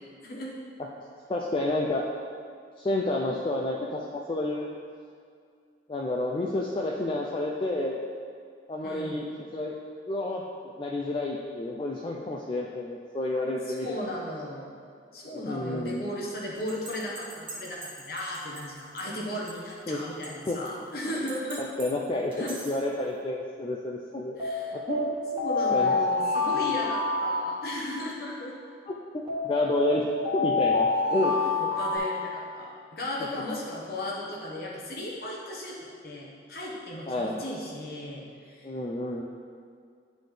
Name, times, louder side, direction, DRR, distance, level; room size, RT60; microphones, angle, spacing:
voice 1, 1.3-2.0 2.8-4.7 5.9-8.0 8.7-9.3 9.5-9.8 10.1-10.4 10.8-13.9 15.3-16.1 19.9-20.0 20.5-20.6 21.6-24.4 24.7-25.2 25.7-25.9 28.9-29.0 29.4-30.1 30.3-31.3 31.6-31.7 37.1-37.4 38.6-39.2, left 2 dB, 30° left, -2 dB, 0.3 m, -30 dB
voice 2, 8.8-9.2 13.7-14.7 15.1-21.6 22.4-22.6 24.4-24.7 25.3-28.6 31.8-35.8 36.0-38.7, left 1 dB, 55° left, -4 dB, 1.2 m, -36 dB
sound 1, 16.7-18.6 19.0-19.1 19.5-19.6 20.2-20.7 21.3-21.8 22.3-22.7 24.4-28.2 29.3-32.0, left 3 dB, 30° right, 1.3 m, -28 dB
10.5 x 4.1 x 3.3 m, 2.2 s
head